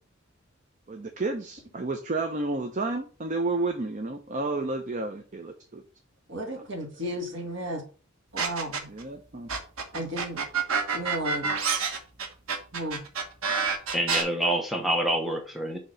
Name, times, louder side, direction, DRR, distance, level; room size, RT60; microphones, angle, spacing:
voice 1, 0.9-5.8 6.5-6.6 8.9-9.5, right 3 dB, 40° right, 4 dB, 0.6 m, -31 dB
voice 2, 6.3-7.8 8.3-8.9 9.9-10.4 10.9-11.5 12.7-13.0, equal, 60° right, 1 dB, 1.8 m, -33 dB
sound 1, 8.4-9.0 9.5-14.2, right 5 dB, 90° right, 1.1 m, -27 dB
voice 3, 13.9-15.8, right 1 dB, ahead, 2 dB, 0.9 m, -27 dB
6.5 x 3.0 x 5.6 m, 0.37 s
head